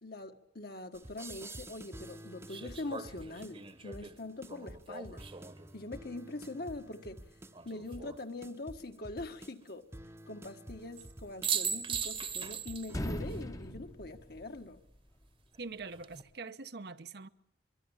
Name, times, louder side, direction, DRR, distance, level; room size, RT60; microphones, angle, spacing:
voice 1, 0.0-5.2 5.7-7.2 7.6-9.8 10.3-14.8, left 2 dB, 60° left, 1.8 m, -43 dB
sound 1, 0.9-13.4, right 1 dB, 15° right, 0.9 m, -50 dB
sound 2, 1.0-1.1 2.5-5.7 7.5-8.2 11.0-11.1 11.4-13.0 13.3-13.4 15.7-16.2, right 6 dB, 30° right, 1.2 m, -39 dB
sound 3, 11.7-12.5 12.8-15.0, left 1 dB, 20° left, 1.0 m, -40 dB
voice 2, 15.6-17.3, right 4 dB, 65° right, 1.0 m, -44 dB
24.0 x 24.0 x 7.4 m
head